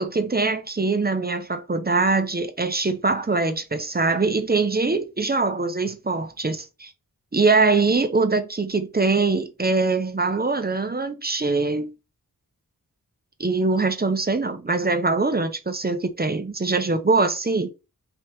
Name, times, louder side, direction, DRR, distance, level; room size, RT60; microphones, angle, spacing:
voice 1, 0.0-6.9 7.3-11.9 13.4-17.7, right 3 dB, 25° right, 0.6 m, -23 dB
3.4 x 2.9 x 2.9 m
wide cardioid pair, 40°, 37 cm